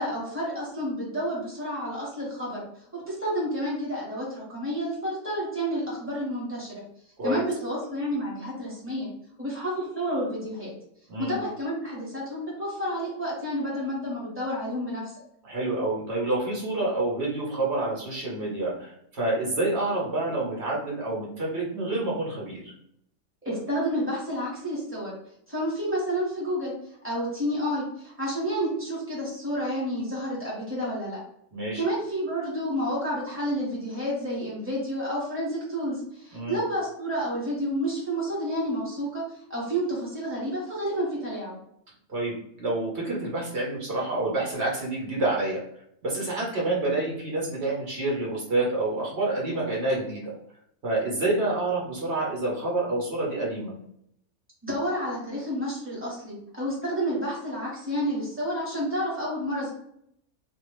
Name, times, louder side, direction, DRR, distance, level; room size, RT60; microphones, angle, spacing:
voice 1, 0.0-2.6 2.9-6.8 7.2-9.1 9.4-10.7 11.2-15.1 23.4-25.1 25.5-26.7 27.0-31.2 31.8-39.2 39.5-41.6 54.6-59.7, equal, 10° right, -7 dB, 1.3 m, -30 dB
voice 2, 11.1-11.4 15.4-22.7 31.5-31.8 36.3-36.6 42.1-45.6 46.0-50.3 50.8-53.7, right 2 dB, 45° right, -4 dB, 1.5 m, -28 dB
2.8 x 2.5 x 3.2 m, 0.72 s
omnidirectional pair, 1.6 m